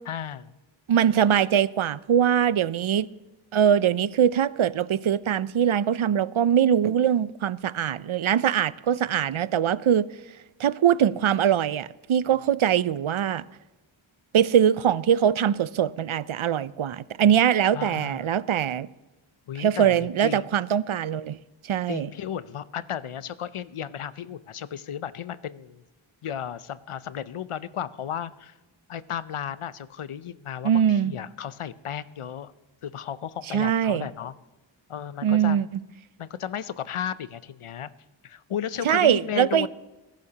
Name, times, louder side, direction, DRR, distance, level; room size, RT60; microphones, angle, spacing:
voice 1, 0.1-0.5 17.7-18.3 19.5-20.5 21.9-25.8 26.2-28.5 28.9-32.5 32.8-34.4 34.9-35.6 36.2-37.9 38.2-39.7, left 9 dB, 90° left, 0.7 m, -34 dB
voice 2, 0.9-3.1 3.5-10.1 10.6-13.4 14.3-18.9 19.6-21.4 21.7-22.1 30.6-31.1 33.5-34.1 35.2-35.7 38.8-39.7, right 9 dB, 75° right, 0.6 m, -22 dB
21.0 x 11.5 x 2.9 m
wide cardioid pair, 55°, 49 cm